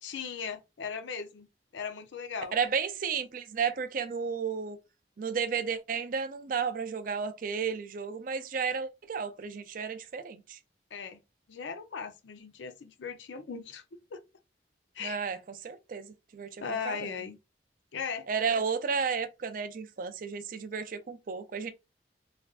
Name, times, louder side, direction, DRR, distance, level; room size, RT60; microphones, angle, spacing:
voice 1, 0.0-1.5 1.7-2.5 10.9-11.2 11.5-13.8 14.1-14.2 14.9-15.3 16.6-17.4 17.9-18.3, left 6 dB, 80° left, 0.5 m, -38 dB
voice 2, 2.5-4.8 5.2-10.6 15.0-15.4 15.6-17.1 18.3-21.7, right 6 dB, 45° right, 0.4 m, -33 dB
3.3 x 2.5 x 2.3 m
head